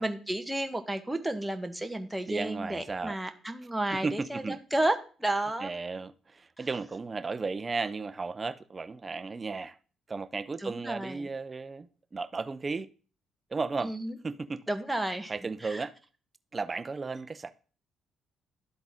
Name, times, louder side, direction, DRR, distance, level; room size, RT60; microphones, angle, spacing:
voice 1, 0.0-5.7 10.6-11.3 13.8-14.2 14.7-15.3 15.6-15.9, right 1 dB, 5° right, 1.1 m, -32 dB
voice 2, 2.3-3.2 3.9-4.6 5.6-9.8 10.1-12.9 13.5-13.9 14.2-14.6 15.3-15.9 16.5-17.5, right 4 dB, 30° right, 0.6 m, -34 dB
12.0 x 3.9 x 3.7 m
supercardioid pair, 70°, 0 cm